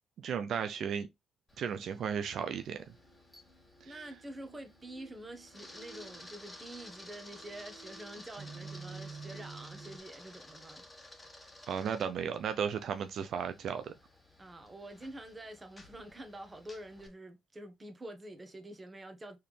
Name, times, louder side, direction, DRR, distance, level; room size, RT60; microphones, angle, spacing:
voice 1, 0.2-1.1 1.6-2.8 3.8-4.0 11.7-13.9, right 7 dB, 65° right, 0.5 m, -34 dB
Camera, 1.5-17.1, left 1 dB, 15° left, 1.5 m, -54 dB
sound 1, 2.8-10.0, right 4 dB, 50° right, 1.5 m, -51 dB
voice 2, 3.8-10.8 14.4-19.4, right 1 dB, 25° right, 1.3 m, -47 dB
4.5 x 3.7 x 3.2 m
cardioid pair, 90°, 0 cm